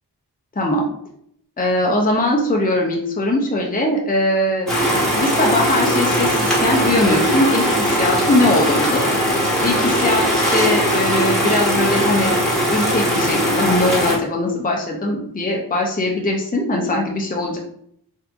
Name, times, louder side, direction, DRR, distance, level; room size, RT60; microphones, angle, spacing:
voice 1, 1.6-4.7 5.1-9.0 9.6-12.3 12.7-17.6, left 1 dB, 20° left, 0 dB, 0.6 m, -20 dB
sound 1, 4.7-14.2, equal, ahead, 1.5 m, -19 dB
3.4 x 2.7 x 2.5 m, 0.71 s
wide cardioid pair, 50°, 41 cm